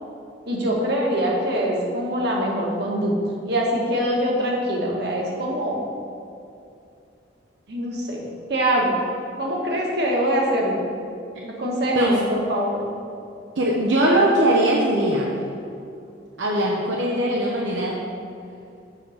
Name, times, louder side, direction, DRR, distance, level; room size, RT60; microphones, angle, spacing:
voice 1, 0.5-3.1 3.5-5.8 7.7-9.0 9.4-10.9 11.6-12.8, equal, 60° right, -2 dB, 1.5 m, -23 dB
voice 2, 13.6-15.3 16.4-18.0, right 1 dB, 85° right, -3 dB, 0.9 m, -20 dB
7.7 x 4.7 x 6.4 m, 2.5 s
head